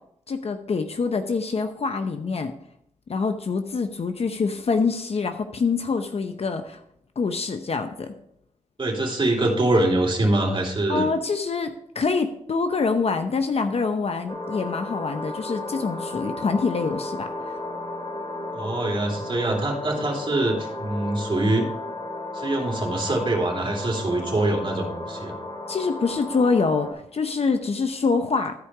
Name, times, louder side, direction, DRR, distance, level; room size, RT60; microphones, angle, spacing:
voice 1, 0.3-2.5 3.1-6.8 7.2-8.1 10.9-11.7 11.9-17.6 25.7-28.5, left 4 dB, 55° left, 7 dB, 0.7 m, -25 dB
voice 2, 8.8-11.1 18.5-21.7 22.3-25.4, right 2 dB, 40° right, 0 dB, 2.8 m, -24 dB
sound 1, 14.3-26.9, left 2 dB, 35° left, 2.6 m, -34 dB
12.5 x 5.1 x 4.8 m, 0.73 s
wide cardioid pair, 85°, 13 cm